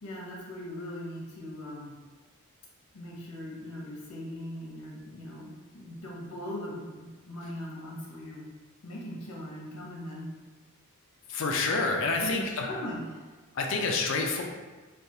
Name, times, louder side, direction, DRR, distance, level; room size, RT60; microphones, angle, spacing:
voice 1, 0.0-1.9 2.9-5.5 5.7-8.4 8.8-10.3 12.2-13.3, left 1 dB, 90° left, -4 dB, 0.8 m, -39 dB
voice 2, 11.3-12.4 13.6-14.4, left 3 dB, 60° left, 2 dB, 0.4 m, -27 dB
3.3 x 2.3 x 2.7 m, 1.3 s
head